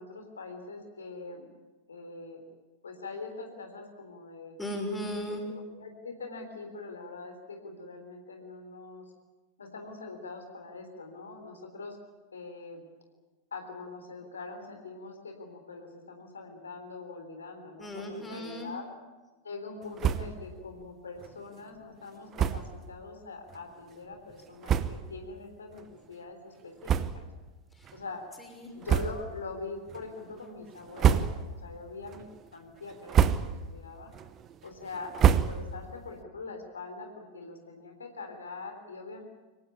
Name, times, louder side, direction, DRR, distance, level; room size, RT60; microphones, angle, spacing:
voice 1, 0.0-1.5 1.9-2.4 2.8-4.6 5.3-9.0 9.6-12.0 12.3-12.9 13.5-18.9 19.4-27.2 27.9-28.2 28.7-34.1 34.6-39.2, left 3 dB, 70° left, 4 dB, 3.7 m, -43 dB
voice 2, 4.6-5.4 17.8-18.7 27.7-28.0 28.4-28.7, left 1 dB, 10° left, 2 dB, 5.9 m, -36 dB
sound 1, 20.0-20.5 20.8-20.9 21.2-21.3 22.3-22.8 23.5-23.6 24.3-24.4 24.6-25.2 25.7-25.9 26.8-27.5 27.8-28.0 28.8-29.4 29.9-30.3 30.8-31.7 32.1-32.5 32.9-33.7 34.1-35.9, right 9 dB, 30° right, 1.1 m, -27 dB
24.5 x 18.0 x 9.8 m, 1.2 s
figure-of-eight pair, 90°, 0 cm